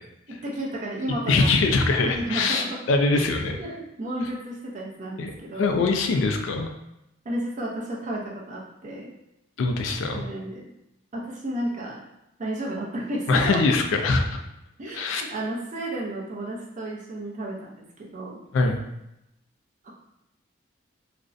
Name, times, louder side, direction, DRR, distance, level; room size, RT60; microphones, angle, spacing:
voice 1, 0.3-1.5 2.0-2.8 3.1-5.8 7.2-9.1 10.1-10.6 11.1-12.0 12.4-13.6 14.8-18.4 19.8-19.9, right 1 dB, 40° right, -3 dB, 0.5 m, -32 dB
voice 2, 1.3-3.6 5.2-5.3 5.6-6.7 9.6-10.2 13.3-14.4 14.9-15.2 18.5-18.8, left 3 dB, 85° left, 4 dB, 0.3 m, -22 dB
2.4 x 2.0 x 2.5 m, 0.86 s
head